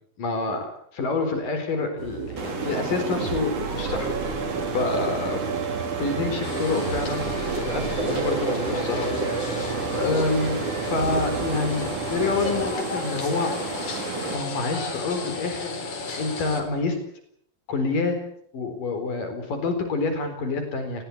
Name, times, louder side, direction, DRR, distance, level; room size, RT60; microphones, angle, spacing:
voice 1, 0.2-0.7 0.9-5.4 6.0-9.0 9.4-9.7 10.0-10.6 10.9-13.5 14.3-15.8 16.2-17.0 17.7-18.2 18.5-21.0, left 3 dB, 75° left, 7 dB, 5.9 m, -27 dB
sound 1, 2.0-12.7, right 4 dB, 45° right, 4.2 m, -31 dB
sound 2, 2.4-14.4, right 4 dB, 60° right, 5.1 m, -32 dB
sound 3, 6.4-16.6, left 3 dB, 55° left, 5.5 m, -34 dB
28.0 x 20.5 x 8.6 m, 0.69 s
omnidirectional pair, 3.9 m